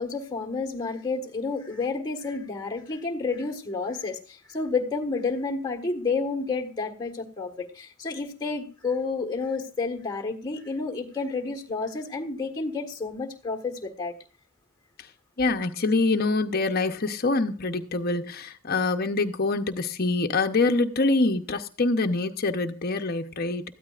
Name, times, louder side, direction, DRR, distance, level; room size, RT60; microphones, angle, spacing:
voice 1, 0.0-14.1, left 4 dB, 20° left, 1.5 m, -30 dB
voice 2, 15.4-23.6, left 3 dB, 45° left, 0.9 m, -25 dB
19.0 x 13.5 x 2.5 m
head